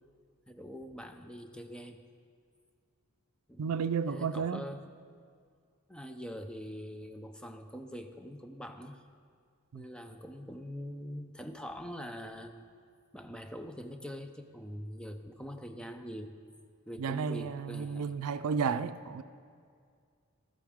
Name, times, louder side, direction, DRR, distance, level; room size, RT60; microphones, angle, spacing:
voice 1, 0.5-2.1 3.5-3.7 4.1-4.9 5.9-9.0 9.7-12.7 13.1-16.4 16.9-18.1, equal, 5° left, 0.5 m, -43 dB
voice 2, 3.6-4.7 9.7-9.8 17.0-19.2, right 6 dB, 80° right, 0.4 m, -32 dB
15.0 x 12.5 x 3.6 m
head